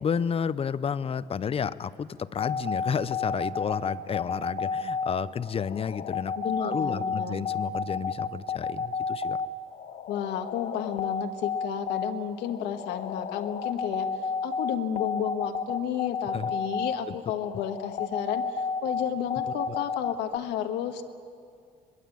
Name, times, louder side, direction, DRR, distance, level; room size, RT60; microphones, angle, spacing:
voice 1, 0.0-6.3 6.6-9.4 16.3-16.5 17.1-17.2 19.7-19.8, left 7 dB, 35° left, 15 dB, 0.7 m, -31 dB
sound 1, 2.4-20.4, left 5 dB, 55° left, 1.4 m, -31 dB
voice 2, 6.4-7.5 10.1-14.1 14.4-21.0, left 9 dB, 90° left, 6 dB, 1.6 m, -32 dB
22.5 x 22.0 x 8.7 m, 2.3 s
cardioid pair, 110°, 17 cm